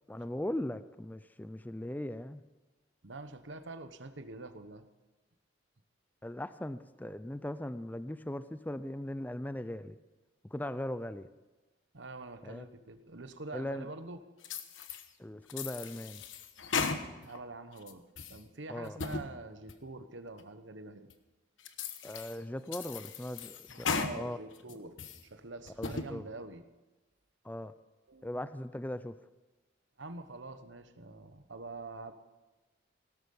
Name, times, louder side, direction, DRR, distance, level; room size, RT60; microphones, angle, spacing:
voice 1, 0.1-2.4 6.2-10.0 10.5-11.3 12.4-12.7 13.5-13.9 15.2-16.2 18.7-19.0 22.0-24.4 25.8-26.3 27.4-27.7 28.2-29.1, left 1 dB, 10° left, 13 dB, 0.4 m, -39 dB
voice 2, 3.0-4.8 11.9-14.2 17.2-18.0 18.3-21.1 23.9-24.9 25.2-26.6 28.1-28.4 30.0-32.1, right 2 dB, 75° right, 9 dB, 1.1 m, -45 dB
sound 1, 14.4-15.1 15.5-17.4 17.8-18.4 18.8-19.3 19.7-19.8 20.4-20.5 21.1-21.2 21.6-22.4 22.7-24.1 24.6-25.2 25.7-26.1, left 5 dB, 85° left, 1.2 m, -37 dB
17.0 x 13.5 x 5.5 m, 1.1 s
head